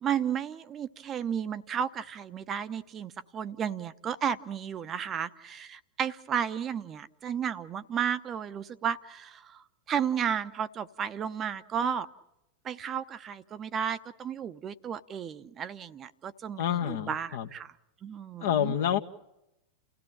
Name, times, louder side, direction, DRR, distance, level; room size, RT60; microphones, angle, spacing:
voice 1, 0.0-12.1 12.6-17.7 18.0-18.7, right 8 dB, 25° right, 0.9 m, -33 dB
voice 2, 16.6-17.5 18.4-19.0, left 9 dB, 55° left, 1.3 m, -28 dB
29.5 x 16.5 x 8.6 m
figure-of-eight pair, 90°, 0 cm